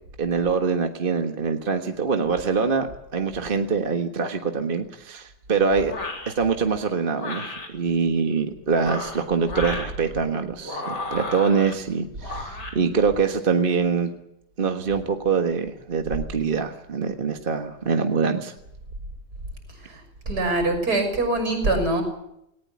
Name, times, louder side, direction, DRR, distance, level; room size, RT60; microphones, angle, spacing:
voice 1, 0.2-2.9 3.1-5.9 6.3-14.1 14.6-18.5, right 5 dB, 35° right, 6 dB, 1.5 m, -24 dB
sound 1, 5.9-6.3 7.1-7.7 8.7-9.9 10.6-11.7 12.2-12.8, left 2 dB, 85° left, 4.2 m, -33 dB
voice 2, 20.3-22.0, right 2 dB, 65° right, 6 dB, 7.0 m, -23 dB
19.0 x 19.0 x 8.5 m, 0.80 s
omnidirectional pair, 1.8 m